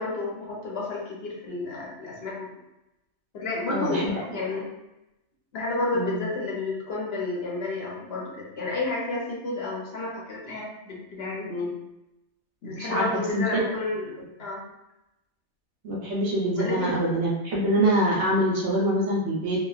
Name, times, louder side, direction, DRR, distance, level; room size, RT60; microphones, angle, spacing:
voice 1, 0.0-2.5 3.3-4.7 5.5-11.7 12.6-14.6 16.6-17.0, left 2 dB, 55° left, -3 dB, 0.8 m, -31 dB
voice 2, 3.7-4.1 5.9-6.2 12.9-13.6 15.8-19.6, right 1 dB, 65° right, -3 dB, 0.9 m, -25 dB
2.9 x 2.2 x 2.3 m, 0.91 s
omnidirectional pair, 1.4 m